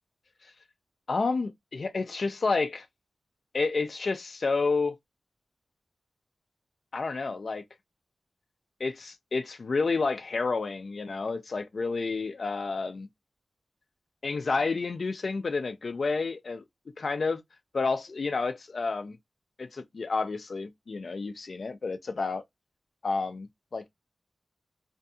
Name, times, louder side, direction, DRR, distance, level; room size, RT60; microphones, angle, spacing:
voice 1, 1.1-2.9 3.5-5.0 6.9-7.6 8.8-13.1 14.2-16.6 17.0-17.4 17.7-19.2 19.6-22.4 23.0-23.9, left 4 dB, 60° left, 0.4 m, -30 dB
2.6 x 2.3 x 2.6 m
wide cardioid pair, 105°, 0 cm